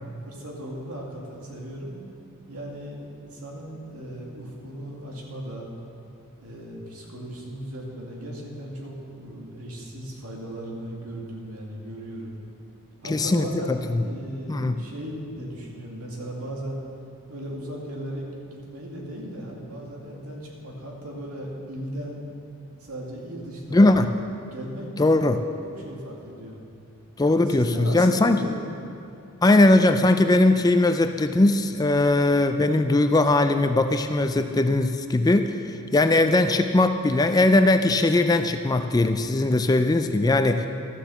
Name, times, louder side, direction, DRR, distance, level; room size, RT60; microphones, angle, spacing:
voice 1, 0.2-2.0 2.5-5.7 6.4-12.4 13.0-16.8 17.3-22.2 22.8-23.9 24.5-25.2 25.6-26.6 27.5-28.7, right 1 dB, 80° right, -2 dB, 2.3 m, -37 dB
voice 2, 13.1-14.0 14.5-14.8 23.7-24.1 25.0-25.4 27.2-28.4 29.4-35.6 35.9-40.7, left 2 dB, 15° left, 8 dB, 0.3 m, -20 dB
12.5 x 7.4 x 7.0 m, 2.6 s
head